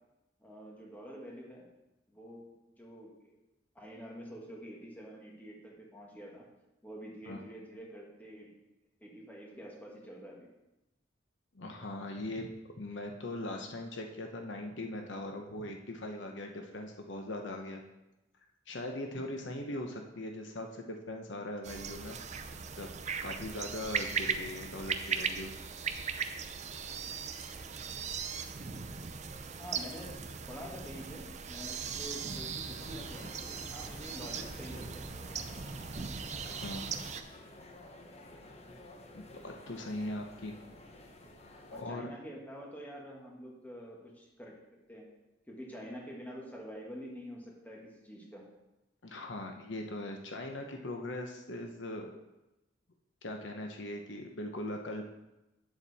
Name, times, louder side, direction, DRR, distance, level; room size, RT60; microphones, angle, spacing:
voice 1, 0.4-1.7 2.1-3.2 3.8-6.5 6.8-8.5 9.0-10.5 29.6-35.3 41.7-45.1 45.5-48.5, equal, 10° left, -2 dB, 1.7 m, -47 dB
voice 2, 11.5-12.5 12.8-17.8 18.7-22.2 22.5-22.9 23.2-25.5 36.4-36.9 39.1-40.6 41.7-42.1 49.0-52.1 53.2-55.1, left 1 dB, 65° left, 3 dB, 0.9 m, -40 dB
sound 1, 21.6-37.2, right 6 dB, 40° right, 0.6 m, -38 dB
sound 2, 32.8-41.8, left 1 dB, 35° left, 1.0 m, -52 dB
8.8 x 7.2 x 4.2 m, 0.96 s
head